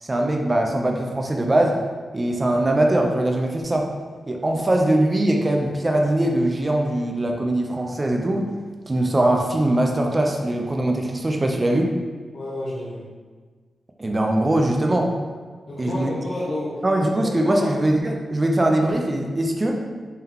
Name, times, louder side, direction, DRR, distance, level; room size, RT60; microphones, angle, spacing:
voice 1, 0.0-1.8 2.1-3.9 4.3-8.5 8.9-11.9 14.0-15.1 15.8-16.1 16.8-19.8, right 1 dB, 25° right, 1 dB, 0.4 m, -21 dB
voice 2, 12.3-13.1 15.7-17.7, left 1 dB, 50° left, -9 dB, 0.8 m, -30 dB
3.7 x 2.8 x 3.5 m, 1.5 s
wide cardioid pair, 115°, 0 cm